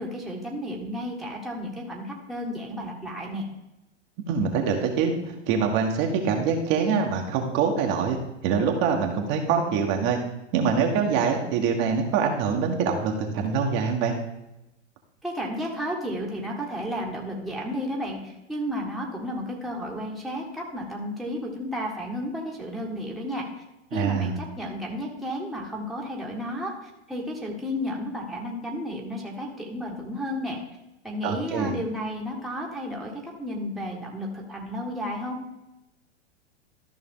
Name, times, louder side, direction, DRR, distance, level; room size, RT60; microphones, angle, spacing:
voice 1, 0.0-3.5 15.2-23.5 23.9-30.6 31.0-35.4, equal, ahead, -3 dB, 1.6 m, -32 dB
voice 2, 4.3-8.2 8.4-10.2 10.5-14.1 23.9-24.3 31.2-31.7, right 6 dB, 40° right, 1 dB, 1.5 m, -24 dB
13.5 x 5.6 x 3.8 m, 0.92 s
hypercardioid pair, 120°, 35 cm